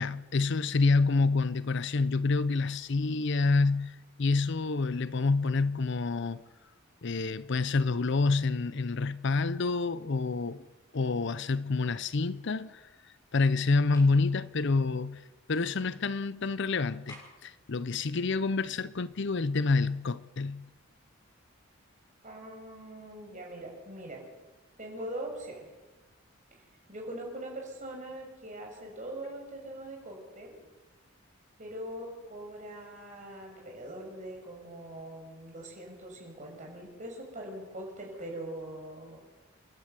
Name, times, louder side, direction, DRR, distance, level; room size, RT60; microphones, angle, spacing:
voice 1, 0.0-6.4 7.0-10.7 10.9-12.8 13.3-15.2 15.5-20.6, left 3 dB, 55° left, 0.6 m, -28 dB
sound 1, 13.9-14.2 17.1-17.5, left 1 dB, 20° left, 6.9 m, -50 dB
voice 2, 22.2-24.2 24.8-25.7 26.9-30.6 31.6-39.2, right 1 dB, 35° right, 6.0 m, -42 dB
28.0 x 12.5 x 8.2 m
head